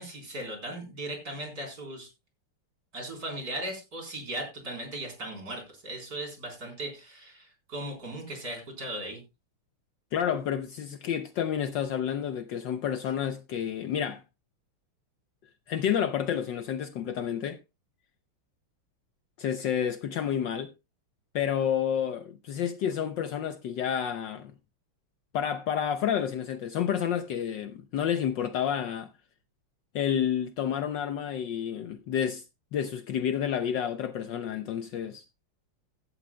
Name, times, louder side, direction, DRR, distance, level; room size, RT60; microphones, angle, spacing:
voice 1, 0.0-2.1 2.9-9.2, right 1 dB, 45° right, 4.5 m, -37 dB
voice 2, 10.1-14.2 15.7-17.6 19.4-20.7 21.3-24.5 25.3-29.1 29.9-32.4 32.7-35.2, left 9 dB, 70° left, 1.2 m, -30 dB
16.0 x 11.5 x 2.2 m
omnidirectional pair, 2.4 m